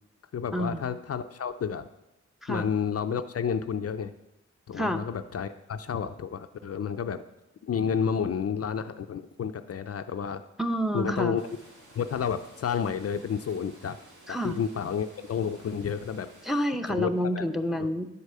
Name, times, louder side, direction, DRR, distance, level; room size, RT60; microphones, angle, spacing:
voice 1, 0.3-1.9 2.5-4.1 4.7-7.2 7.6-10.4 10.9-11.5 12.0-14.0 14.3-16.3 16.9-17.4 17.8-17.9, left 7 dB, 55° left, 9 dB, 0.5 m, -30 dB
voice 2, 10.6-11.4 14.3-14.6 16.4-18.1, equal, ahead, 6 dB, 0.6 m, -28 dB
sound 1, 11.4-16.7, right 1 dB, 85° right, 2.2 m, -54 dB
9.7 x 4.8 x 6.6 m, 0.95 s
cardioid pair, 70°, 30 cm